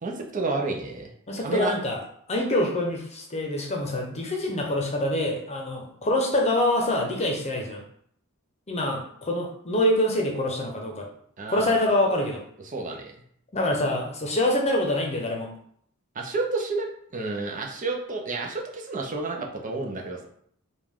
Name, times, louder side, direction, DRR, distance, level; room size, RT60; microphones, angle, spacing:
voice 1, 0.0-1.1 1.4-1.7 11.4-11.8 12.7-13.1 16.1-20.3, right 3 dB, 35° right, 1 dB, 0.6 m, -30 dB
voice 2, 1.3-2.0 2.3-7.8 8.7-11.1 11.5-12.4 13.5-15.5, left 1 dB, 30° left, 1 dB, 0.8 m, -25 dB
5.2 x 2.4 x 3.6 m, 0.65 s
head